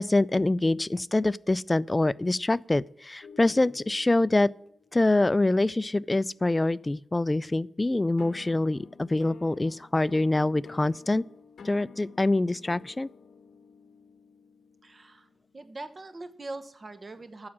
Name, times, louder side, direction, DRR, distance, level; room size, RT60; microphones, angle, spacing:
voice 1, 0.0-4.5 4.9-11.3 11.6-13.1, left 2 dB, 25° left, 0.3 m, -25 dB
sound 1, 3.2-6.6 8.2-16.8, left 5 dB, 75° left, 1.1 m, -52 dB
voice 2, 14.8-15.3 15.5-17.5, right 2 dB, 40° right, 1.2 m, -41 dB
9.6 x 7.2 x 7.4 m
cardioid pair, 75°, 0 cm